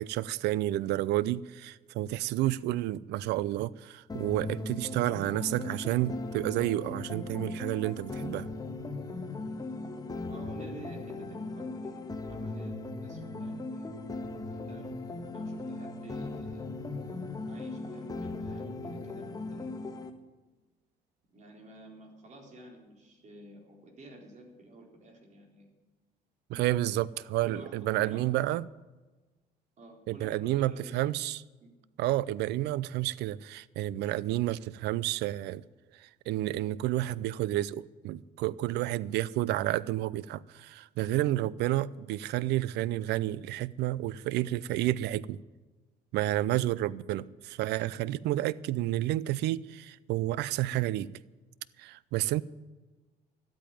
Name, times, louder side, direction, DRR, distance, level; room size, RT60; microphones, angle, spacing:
voice 1, 0.0-8.5 26.5-28.6 30.1-31.4 32.0-35.6 36.0-45.4 46.1-51.1 51.8-52.4, right 15 dB, 80° right, 0.5 m, -30 dB
sound 1, 4.1-20.1, left 2 dB, 20° left, 1.5 m, -38 dB
voice 2, 10.3-14.0 14.4-14.9 15.3-16.7 17.5-19.7 21.3-25.7 26.5-26.8 27.4-28.4 29.8-31.0 31.6-31.7, right 2 dB, 45° right, 4.0 m, -51 dB
12.5 x 8.6 x 9.0 m
cardioid pair, 110°, 17 cm